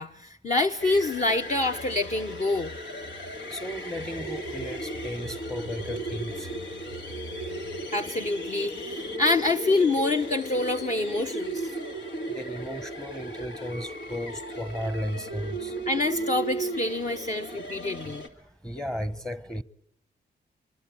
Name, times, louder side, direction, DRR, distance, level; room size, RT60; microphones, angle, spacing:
voice 1, 0.0-2.7 7.9-11.7 15.9-18.2, left 2 dB, 40° left, 1.1 m, -26 dB
sound 1, 0.8-18.3, right 1 dB, 85° left, 2.5 m, -36 dB
voice 2, 3.5-6.5 12.3-15.8 18.6-19.6, equal, 5° left, 0.9 m, -34 dB
26.0 x 24.0 x 7.8 m
cardioid pair, 80°, 19 cm